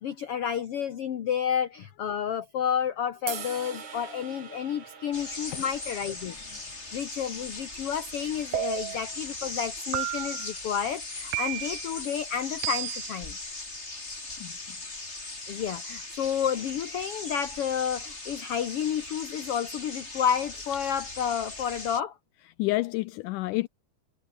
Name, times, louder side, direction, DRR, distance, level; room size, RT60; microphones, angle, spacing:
voice 1, 0.0-6.4 6.9-13.4 15.5-22.2, left 8 dB, 55° left, 1.8 m, -30 dB
sound 1, 3.3-9.5, right 6 dB, 60° right, 4.9 m, -44 dB
sound 2, 5.1-22.0, left 2 dB, 20° left, 3.8 m, -39 dB
sound 3, 8.5-9.1 9.9-10.5 11.3-11.9 12.6-13.2, right 19 dB, 85° right, 2.3 m, -32 dB
voice 2, 14.4-14.8 22.6-23.7, left 20 dB, 80° left, 2.0 m, -30 dB
omnidirectional pair, 3.9 m